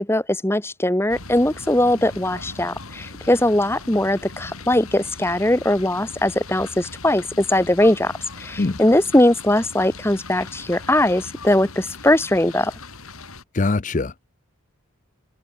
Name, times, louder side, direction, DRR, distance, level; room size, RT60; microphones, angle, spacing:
voice 1, 0.0-8.1 8.4-12.7, left 1 dB, 10° left, 1.1 m, -20 dB
sound 1, 1.1-13.4, left 3 dB, 80° left, 6.9 m, -39 dB
voice 2, 13.5-14.3, left 3 dB, 35° left, 0.6 m, -22 dB
head